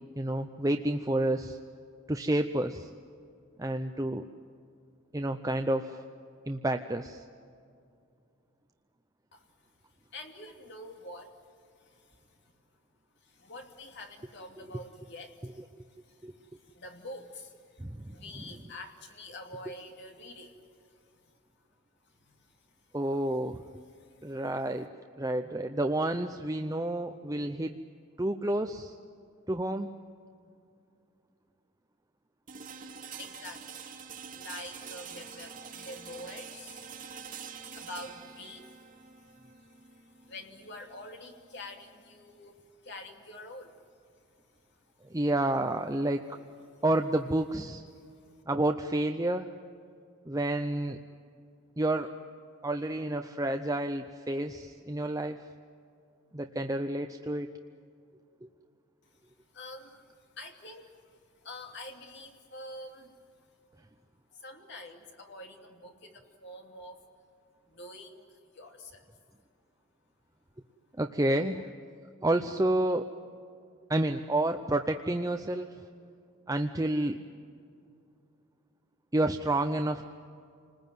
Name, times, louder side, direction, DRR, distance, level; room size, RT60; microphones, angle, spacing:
voice 1, 0.2-1.6 2.1-2.9 3.6-4.2 5.1-6.0 6.5-7.2 16.2-16.3 17.8-18.2 22.9-23.6 24.2-24.9 25.2-27.8 28.2-28.9 29.5-29.9 45.1-46.3 46.8-47.8 48.5-49.5 50.3-51.0 51.8-52.1 52.6-55.4 56.3-57.5 71.0-71.6 72.2-73.1 73.9-75.7 76.5-77.2 79.1-80.1, right 1 dB, 15° right, 6 dB, 0.6 m, -29 dB
voice 2, 10.1-12.5 13.2-21.3 22.0-22.8 23.9-24.3 33.2-33.8 34.3-43.8 46.7-46.8 47.9-48.4 59.1-59.2 59.5-63.2 64.3-67.0 67.7-69.1, left 1 dB, 50° left, 3 dB, 2.8 m, -47 dB
sound 1, 32.5-42.4, right 6 dB, 40° right, 2.5 m, -46 dB
29.0 x 20.5 x 9.3 m, 2.4 s
head